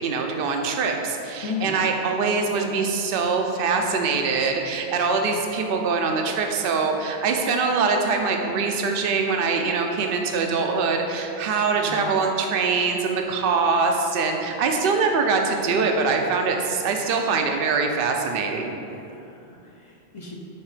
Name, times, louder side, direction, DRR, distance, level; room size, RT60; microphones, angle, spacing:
voice 1, 0.0-18.8, right 4 dB, 60° right, 3 dB, 0.8 m, -23 dB
voice 2, 1.4-1.8 6.0-6.1 11.7-12.1 18.9-20.4, left 4 dB, 35° left, -1 dB, 0.7 m, -35 dB
7.2 x 4.2 x 4.9 m, 2.7 s
omnidirectional pair, 1.1 m